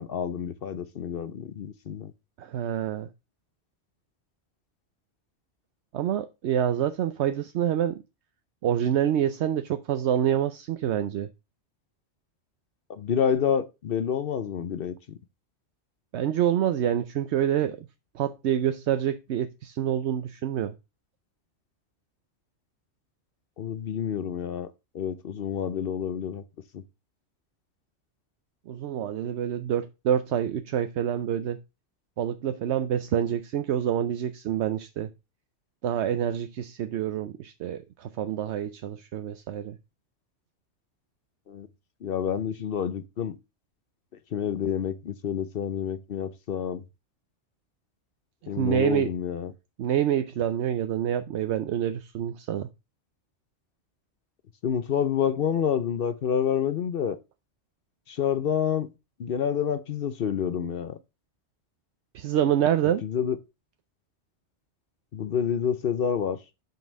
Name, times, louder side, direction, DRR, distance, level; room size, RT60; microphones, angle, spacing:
voice 1, 0.0-2.1 12.9-15.2 23.6-26.4 26.7-26.8 41.5-41.7 42.0-43.4 44.3-46.8 48.5-49.5 54.6-57.2 58.1-58.9 59.2-61.0 63.0-63.4 65.1-66.4, left 8 dB, 60° left, 0.8 m, -28 dB
voice 2, 2.4-3.1 5.9-8.0 8.6-11.3 16.1-17.9 18.1-20.7 28.7-31.6 32.2-35.1 35.8-39.8 48.6-49.1 49.8-52.7 62.1-63.0, right 10 dB, 75° right, 0.9 m, -27 dB
6.0 x 5.4 x 6.2 m
omnidirectional pair, 1.2 m